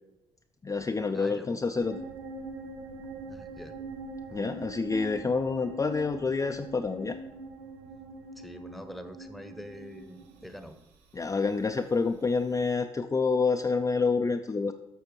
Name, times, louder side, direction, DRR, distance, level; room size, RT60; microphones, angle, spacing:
voice 1, 0.6-2.0 4.3-7.2 11.1-14.7, left 4 dB, 20° left, 5 dB, 0.5 m, -28 dB
voice 2, 1.1-1.6 3.3-3.7 8.4-10.8, equal, ahead, 8 dB, 1.0 m, -44 dB
sound 1, 1.8-12.7, right 2 dB, 75° right, 0.7 m, -44 dB
12.5 x 6.4 x 3.1 m, 0.97 s
hypercardioid pair, 45°, 14 cm